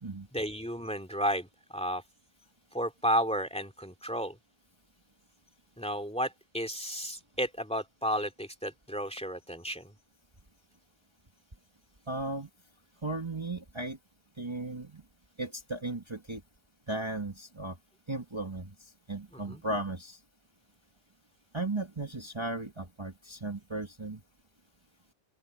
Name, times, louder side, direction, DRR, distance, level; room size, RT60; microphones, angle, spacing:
voice 1, 0.3-2.0 2.7-4.4 5.8-9.9 19.3-19.6, equal, 5° left, 2.6 m, -33 dB
voice 2, 12.1-12.5 13.0-14.0 14.4-15.0 15.4-16.4 16.9-17.8 18.1-20.2 21.5-24.2, right 2 dB, 25° right, 1.7 m, -36 dB
omnidirectional pair, 1.1 m